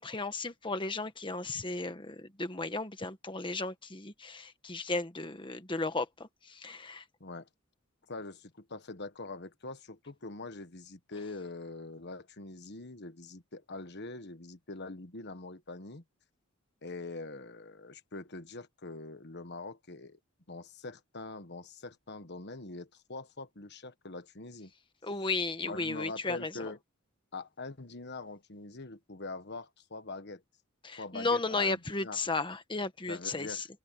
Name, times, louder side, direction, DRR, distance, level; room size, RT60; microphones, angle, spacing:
voice 1, 0.0-7.0 25.0-26.7 30.8-33.7, left 3 dB, 25° left, 1.4 m, -34 dB
voice 2, 8.1-16.0 16.8-20.2 20.5-24.7 25.6-26.8 27.3-30.4 31.0-32.2 33.1-33.6, left 3 dB, 50° left, 1.4 m, -43 dB
head